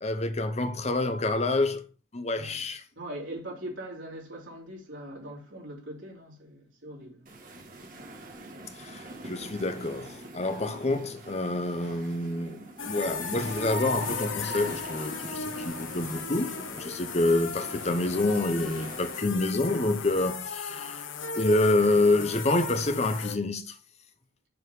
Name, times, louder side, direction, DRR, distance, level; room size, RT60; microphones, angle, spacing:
voice 1, 0.0-1.8 2.1-2.8 8.8-12.6 12.8-21.0 21.3-23.7, left 2 dB, 35° left, 0.8 m, -27 dB
voice 2, 2.3-2.7 2.9-7.3, right 1 dB, 85° right, 3.3 m, -41 dB
sound 1, 7.3-19.2, right 2 dB, 45° right, 1.7 m, -44 dB
sound 2, 12.8-23.4, left 5 dB, 85° left, 0.8 m, -36 dB
6.8 x 4.3 x 5.3 m
head